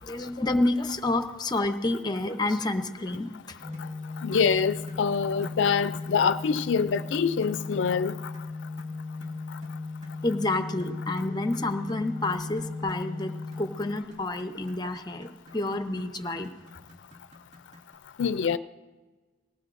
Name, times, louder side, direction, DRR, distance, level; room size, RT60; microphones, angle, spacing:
voice 1, 0.0-3.8 10.2-16.5, left 2 dB, 25° left, 0.8 m, -29 dB
sound 1, 3.1-3.3 3.7-3.9 4.3-4.5 4.9-5.1 5.4-5.6 5.9-6.1 6.4-6.6 6.9-7.1 7.4-7.6 7.9-8.1 8.3-17.9, left 1 dB, 40° right, 1.7 m, -50 dB
Organ, 3.6-14.5, left 3 dB, 20° right, 3.4 m, -37 dB
voice 2, 4.2-8.1 18.2-18.6, left 6 dB, 85° left, 0.4 m, -25 dB
19.5 x 18.0 x 2.5 m
head